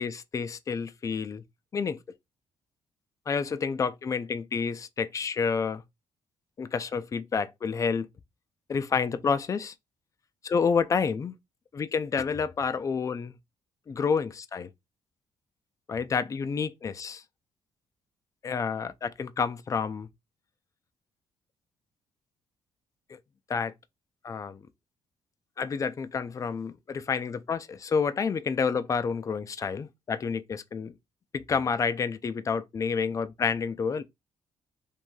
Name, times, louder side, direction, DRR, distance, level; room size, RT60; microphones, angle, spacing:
voice 1, 0.0-1.4 1.7-2.0 3.3-5.8 6.6-8.1 8.7-9.7 10.4-11.3 11.7-13.4 13.9-14.7 15.9-17.2 18.4-20.1 23.1-23.2 23.5-23.7 24.2-24.6 25.6-31.0 31.3-34.0, left 5 dB, 30° left, 0.3 m, -29 dB
3.1 x 2.5 x 2.2 m
cardioid pair, 80°, 10 cm